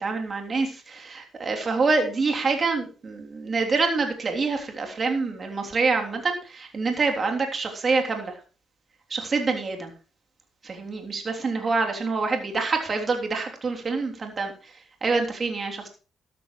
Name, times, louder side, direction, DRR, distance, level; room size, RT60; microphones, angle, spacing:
voice 1, 0.0-8.3 9.1-9.9 10.6-14.5 15.0-15.9, right 4 dB, 40° right, 3 dB, 3.3 m, -26 dB
13.0 x 13.0 x 3.2 m, 0.36 s
cardioid pair, 90°, 0 cm